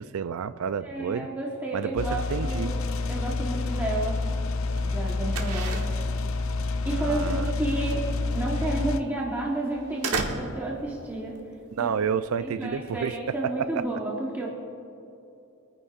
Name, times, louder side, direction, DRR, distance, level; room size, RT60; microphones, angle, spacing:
voice 1, 0.0-1.3 1.7-2.8 7.0-7.5 11.7-13.8, right 7 dB, 70° right, 15 dB, 0.4 m, -30 dB
voice 2, 0.8-2.8 3.1-4.2 4.8-5.9 6.8-8.0 8.3-11.4 11.8-11.9 12.4-14.5, right 2 dB, 10° right, -4 dB, 1.1 m, -31 dB
sound 1, 2.0-9.0, left 3 dB, 65° left, 0.5 m, -28 dB
sound 2, 3.2-13.9, right 3 dB, 85° right, 1.1 m, -37 dB
23.0 x 9.7 x 2.4 m, 2.7 s
head